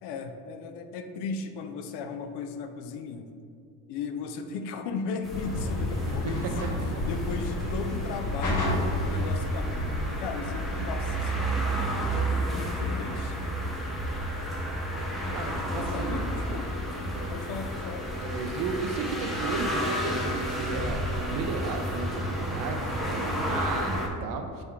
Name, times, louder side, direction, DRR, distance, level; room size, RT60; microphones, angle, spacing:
voice 1, 0.0-3.3 3.9-6.5 7.0-11.7 12.0-13.5 15.7-16.7 17.3-18.1, left 5 dB, 75° left, 6 dB, 0.6 m, -36 dB
sound 1, 5.2-24.1, right 1 dB, ahead, 0.6 m, -31 dB
sound 2, 5.3-10.8, left 1 dB, 50° left, 1.3 m, -31 dB
voice 2, 15.3-16.4 18.2-24.6, right 4 dB, 55° right, 5 dB, 0.5 m, -34 dB
4.3 x 3.2 x 3.6 m, 2.3 s
cardioid pair, 95°, 41 cm